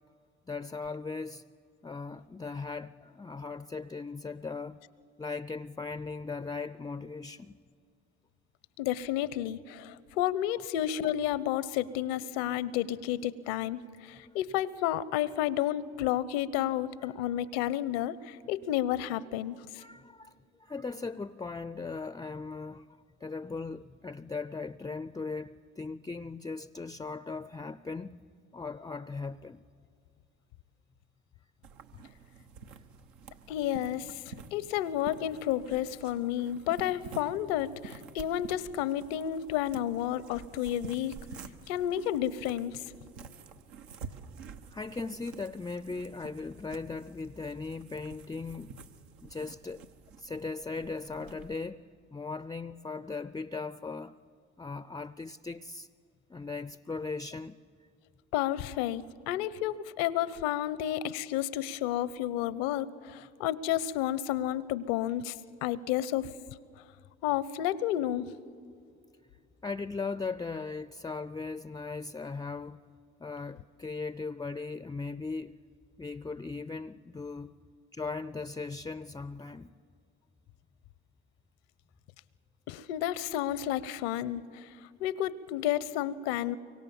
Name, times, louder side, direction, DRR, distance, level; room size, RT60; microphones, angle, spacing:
voice 1, 0.5-1.5 1.8-4.8 5.2-7.6 17.0-17.1 19.8-20.3 20.6-28.3 28.5-29.6 32.7-32.8 44.7-48.8 49.2-49.9 50.2-54.2 54.6-55.9 56.3-57.6 69.6-72.8 73.2-75.6 76.0-77.5 77.9-79.7, left 4 dB, 15° left, 0.5 m, -38 dB
voice 2, 8.8-19.8 33.5-41.2 41.7-42.8 58.3-65.4 65.6-66.3 67.2-68.3 82.7-84.7 85.0-86.6, left 12 dB, 75° left, 0.8 m, -31 dB
sound 1, 31.6-51.5, right 5 dB, 80° right, 1.3 m, -49 dB
24.0 x 24.0 x 7.2 m
hypercardioid pair, 60°, 30 cm